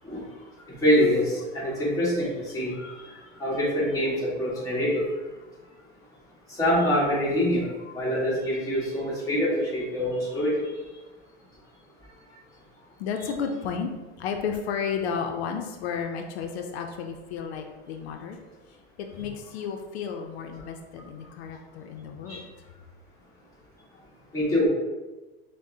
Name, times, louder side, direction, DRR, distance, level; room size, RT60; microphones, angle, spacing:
voice 1, 0.8-2.9 3.4-5.0 6.6-10.5 22.3-22.4 24.3-24.7, equal, 10° left, -7 dB, 1.3 m, -25 dB
voice 2, 13.0-13.9 14.2-18.4 19.0-22.5, left 6 dB, 85° left, 4 dB, 0.5 m, -32 dB
6.0 x 2.1 x 2.7 m, 1.2 s
supercardioid pair, 140°, 31 cm